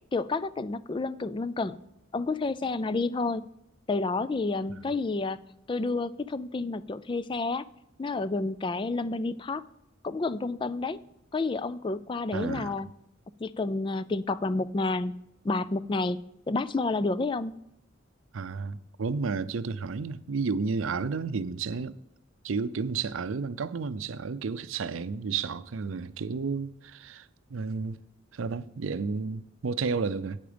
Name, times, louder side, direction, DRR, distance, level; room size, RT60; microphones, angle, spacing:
voice 1, 0.1-1.8 2.1-3.4 3.9-7.6 8.0-9.6 10.0-11.0 11.3-12.9 13.4-15.2 15.4-16.2 16.5-17.5, left 3 dB, 25° left, 0.3 m, -30 dB
voice 2, 12.3-12.8 18.3-21.9 22.4-28.0 28.3-30.4, right 4 dB, 85° right, 0.5 m, -32 dB
8.8 x 8.7 x 5.1 m
head